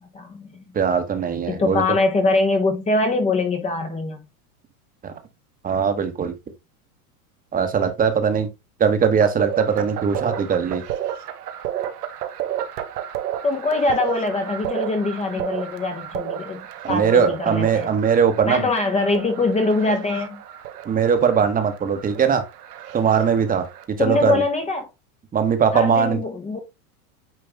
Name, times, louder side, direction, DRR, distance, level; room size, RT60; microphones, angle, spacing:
voice 1, 0.0-0.6 1.5-4.2 13.4-17.9 18.5-20.4 24.0-24.9 25.7-26.6, left 3 dB, 15° left, 1.0 m, -23 dB
voice 2, 0.7-1.8 5.0-5.1 5.6-6.3 7.5-8.5 8.8-10.8 16.8-18.6 20.8-22.4 22.9-23.7 24.0-24.4 25.3-26.2, right 7 dB, 20° right, 1.2 m, -20 dB
sound 1, 9.0-23.8, right 11 dB, 90° right, 1.2 m, -32 dB
9.0 x 3.3 x 3.5 m
supercardioid pair, 130°, 45 cm